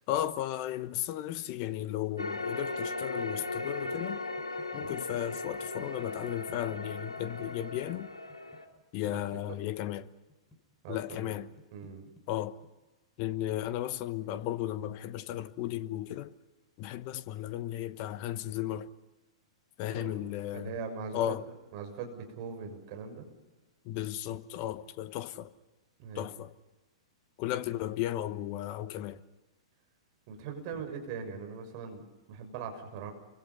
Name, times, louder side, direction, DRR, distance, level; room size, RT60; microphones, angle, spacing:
voice 1, 0.1-4.2 4.7-8.1 8.9-10.1 10.9-11.5 12.3-12.6 13.2-16.3 16.8-18.9 19.8-20.7 21.1-21.4 23.8-25.5 26.1-26.5 27.4-29.2, left 12 dB, 40° left, 1.2 m, -35 dB
sound 1, 2.2-8.7, left 2 dB, 85° left, 4.2 m, -37 dB
sound 2, 3.4-10.6 10.9-12.7, left 1 dB, 5° left, 5.4 m, -57 dB
voice 2, 9.1-9.6 10.8-11.4 11.7-12.0 19.9-20.2 20.5-21.4 21.7-23.3 26.0-26.3 30.3-33.1, right 6 dB, 45° right, 6.3 m, -41 dB
30.0 x 25.0 x 5.6 m
figure-of-eight pair, 105°, 3 cm